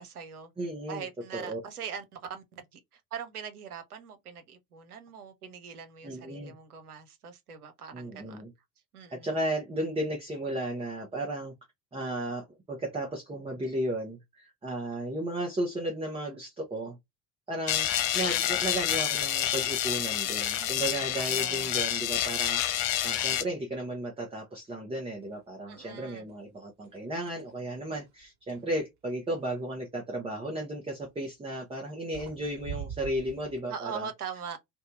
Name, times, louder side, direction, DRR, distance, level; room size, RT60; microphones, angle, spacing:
voice 1, 0.0-0.5 0.9-8.4 8.9-9.3 20.6-21.7 25.7-26.3 33.7-34.6, right 7 dB, 85° right, 0.6 m, -42 dB
voice 2, 0.6-1.1 1.3-1.6 6.0-6.5 7.9-8.5 9.1-11.5 11.9-17.0 17.5-17.9 18.1-34.1, right 1 dB, 15° right, 0.8 m, -34 dB
sound 1, 17.7-23.4, left 11 dB, 50° left, 0.6 m, -28 dB
sound 2, 25.2-25.4 25.8-26.4 26.8-28.7 30.9-31.2 31.8-31.9 32.1-33.6, right 8 dB, 40° right, 1.2 m, -44 dB
2.6 x 2.2 x 2.5 m
figure-of-eight pair, 60°, 44 cm